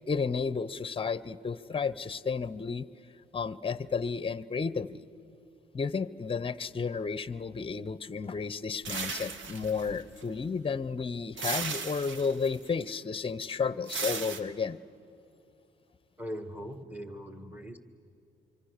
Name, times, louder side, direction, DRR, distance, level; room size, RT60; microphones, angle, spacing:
voice 1, 0.1-2.9 3.3-5.0 5.7-14.8, left 5 dB, 25° left, 17 dB, 0.8 m, -32 dB
sound 1, 8.8-10.3 11.4-12.6 13.9-14.4, right 5 dB, 70° right, 1.7 m, -36 dB
voice 2, 16.2-17.8, equal, 10° right, 8 dB, 1.8 m, -40 dB
25.5 x 25.0 x 6.7 m, 2.9 s
cardioid pair, 90°, 20 cm